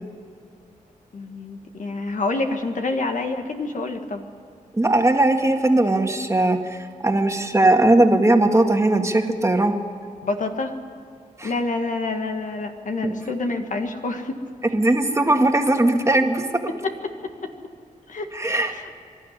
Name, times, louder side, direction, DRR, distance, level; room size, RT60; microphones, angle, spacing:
voice 1, 1.1-4.2 10.2-10.7 11.4-14.4 16.7-17.5 18.1-18.9, left 3 dB, 60° left, 5 dB, 1.8 m, -28 dB
voice 2, 4.7-9.8 11.4-11.5 13.0-13.1 14.7-16.5 18.3-18.7, right 2 dB, 20° right, 4 dB, 2.0 m, -19 dB
24.5 x 12.5 x 9.8 m, 2.3 s
cardioid pair, 65°, 15 cm